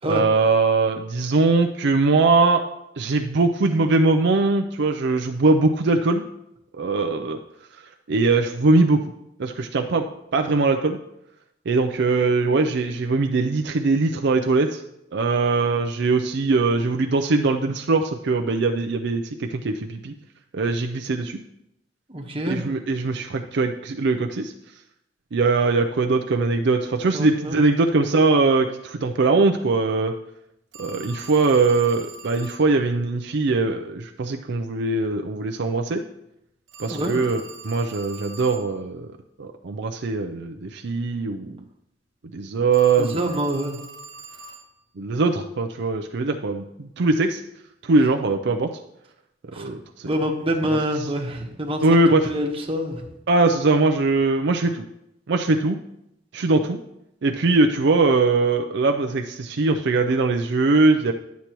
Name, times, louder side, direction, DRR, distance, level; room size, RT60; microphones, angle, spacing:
voice 1, 0.1-2.6 3.0-6.2 6.8-7.4 7.7-7.8 8.1-9.0 9.4-10.1 10.3-11.0 11.7-14.8 15.1-20.1 20.5-21.4 22.5-24.5 25.3-30.1 30.8-36.0 36.8-39.1 39.4-41.6 42.3-43.4 45.0-47.4 47.8-48.7 49.6-50.1 51.8-52.3 53.3-54.9 55.3-55.8 56.3-56.8 57.2-61.1, right 3 dB, 65° right, 5 dB, 0.5 m, -21 dB
voice 2, 22.1-22.6 27.1-27.6 36.8-37.1 43.0-43.8 49.5-49.7 50.0-52.0 52.3-53.0, equal, 30° right, 1 dB, 1.2 m, -26 dB
Telephone, 30.7-32.7 36.7-38.7 42.7-44.7, right 1 dB, 90° right, 1.2 m, -41 dB
11.5 x 8.2 x 3.0 m, 0.83 s
head